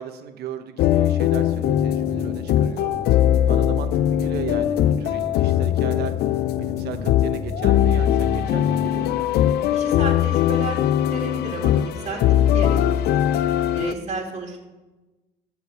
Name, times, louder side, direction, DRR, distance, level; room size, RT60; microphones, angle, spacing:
voice 1, 0.0-2.9 3.5-6.2 6.6-9.3 13.9-14.4, right 8 dB, 75° right, 9 dB, 1.0 m, -36 dB
sound 1, 0.8-13.9, left 11 dB, 70° left, 0.4 m, -21 dB
sound 2, 1.3-9.1, left 2 dB, 50° left, 3.9 m, -36 dB
voice 2, 9.7-12.8 13.1-13.2 13.7-14.6, right 4 dB, 40° right, 0 dB, 2.2 m, -32 dB
13.5 x 4.8 x 7.0 m, 1.1 s
cardioid pair, 110°, 17 cm